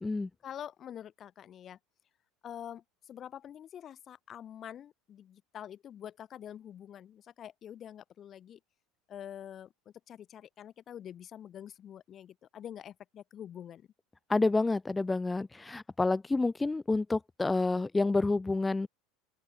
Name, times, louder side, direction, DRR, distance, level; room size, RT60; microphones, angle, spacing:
voice 1, 0.4-1.8 2.4-8.6 9.1-9.7 10.1-13.9, left 10 dB, 35° left, 0.8 m, -46 dB
voice 2, 14.3-18.9, left 3 dB, 10° left, 0.3 m, -29 dB
open air
supercardioid pair, 120°, 0 cm